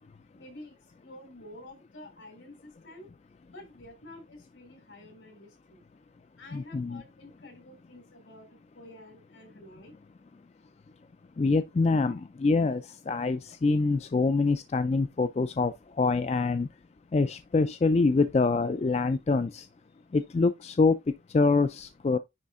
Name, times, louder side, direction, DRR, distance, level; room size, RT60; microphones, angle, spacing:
voice 1, 0.4-3.1 3.5-5.8 6.4-10.0, left 1 dB, 75° left, 3.5 m, -49 dB
voice 2, 6.5-7.0 11.4-16.7 17.1-19.7 20.1-21.0 21.3-22.2, left 3 dB, 35° left, 0.3 m, -25 dB
9.8 x 3.5 x 3.6 m
head